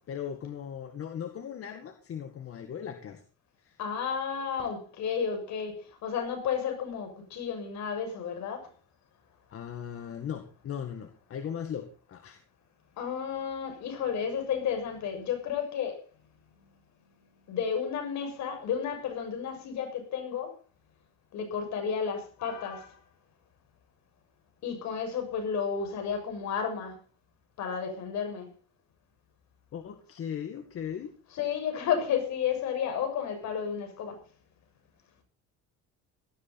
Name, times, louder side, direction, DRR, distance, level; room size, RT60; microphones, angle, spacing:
voice 1, 0.0-3.2 3.6-3.8 9.5-12.4 29.7-31.1, left 8 dB, 45° left, 2.0 m, -38 dB
voice 2, 3.8-8.7 13.0-16.0 17.5-20.5 21.3-23.0 24.6-27.0 27.6-28.5 31.3-34.2, left 7 dB, 65° left, 6.8 m, -32 dB
18.0 x 14.0 x 4.3 m
cardioid pair, 130°, 30 cm